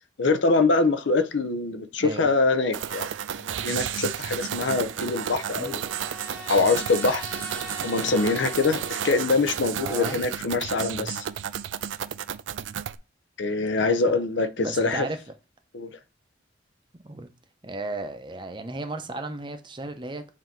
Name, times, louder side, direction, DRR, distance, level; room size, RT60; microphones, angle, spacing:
voice 1, 0.2-3.1 3.4-5.8 6.5-7.2 7.8-11.3 13.4-15.1 15.7-15.9, left 3 dB, 75° left, 0.6 m, -24 dB
voice 2, 2.0-2.3 5.5-5.9 9.7-10.2 10.7-11.1 13.8-14.2 14.6-15.2 16.9-17.3 17.6-20.3, right 2 dB, 25° right, 0.6 m, -35 dB
sound 1, 2.7-13.0, right 9 dB, 80° right, 0.4 m, -32 dB
Trumpet, 4.6-9.3, left 2 dB, 10° left, 1.0 m, -42 dB
7.7 x 2.8 x 4.5 m
head